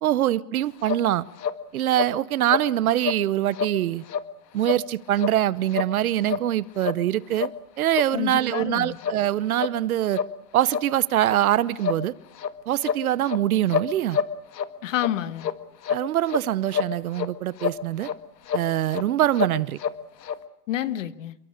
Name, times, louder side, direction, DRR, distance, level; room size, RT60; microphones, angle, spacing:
voice 1, 0.0-1.2 1.7-4.0 4.5-7.5 7.8-10.2 10.5-12.1 12.7-14.2 15.9-18.1 18.5-19.8, right 13 dB, 60° right, 1.0 m, -24 dB
sound 1, 0.9-1.0 1.4-1.6 1.9-2.1 2.5-2.7 3.0-3.2 3.5-3.7 4.1-4.3 4.6-4.8 5.2-5.3 5.7-5.9 6.2-6.4 6.8-7.0 7.4-7.5 7.9-8.1 8.5-8.6 9.0-9.2 9.6-9.7 10.1-10.3 10.7-10.8 11.3-11.4 11.8-12.0 12.4-12.5 12.8-13.4 13.7-14.7 15.0-15.1 15.4-15.5 15.8-16.4 16.7-17.3 17.6-17.8 18.0-18.2 18.5-18.7 18.9-19.0 19.4-19.9 20.2-20.4, left 7 dB, 80° left, 1.9 m, -27 dB
voice 2, 8.1-9.0 14.8-15.5 20.7-21.4, left 12 dB, 50° left, 1.5 m, -28 dB
28.5 x 23.0 x 6.7 m
hypercardioid pair, 165°, 48 cm